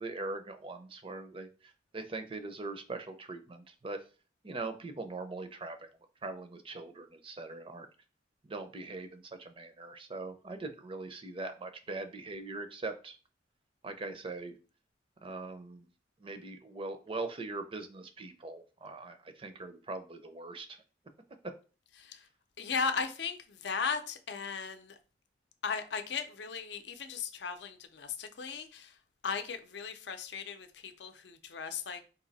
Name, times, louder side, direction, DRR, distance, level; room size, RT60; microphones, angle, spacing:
voice 1, 0.0-1.5 1.9-4.0 4.4-5.8 6.2-7.9 8.4-13.2 13.8-14.5 15.2-15.9 16.2-20.7, right 3 dB, 30° right, 0.6 m, -41 dB
voice 2, 22.6-24.9 25.6-28.9 29.2-32.0, left 5 dB, 70° left, 0.6 m, -37 dB
4.2 x 2.7 x 4.0 m
head